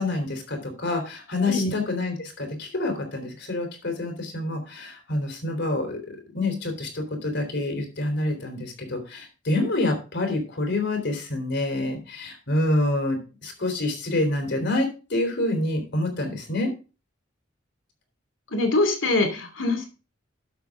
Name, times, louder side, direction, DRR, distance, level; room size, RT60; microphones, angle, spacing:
voice 1, 0.0-16.7, left 2 dB, 60° left, 5 dB, 3.7 m, -27 dB
voice 2, 18.5-19.9, left 2 dB, 85° left, 5 dB, 2.6 m, -23 dB
12.0 x 7.5 x 3.6 m, 0.32 s
head